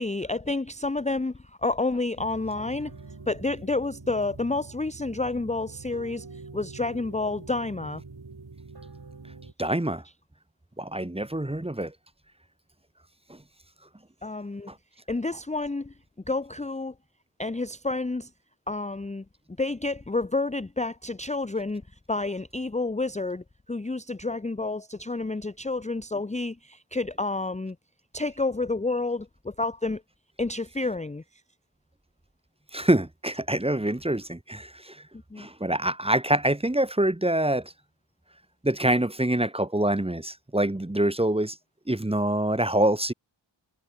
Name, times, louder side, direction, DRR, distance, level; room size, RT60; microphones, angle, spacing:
voice 1, 0.0-2.9 3.3-6.3 6.5-8.0 14.2-14.7 15.1-15.9 16.3-16.9 17.4-18.3 18.7-19.2 19.6-21.8 22.1-27.8 28.1-30.0 30.4-31.2 35.3-35.5, left 3 dB, 15° left, 0.6 m, -29 dB
sound 1, 2.2-9.5, right 4 dB, 55° right, 2.7 m, -45 dB
voice 2, 9.6-10.0 10.8-11.9 13.3-13.4 14.7-14.8 32.7-35.0 35.4-37.7 38.6-41.6 41.9-43.1, right 1 dB, 10° right, 1.1 m, -25 dB
wide cardioid pair, 65°, 47 cm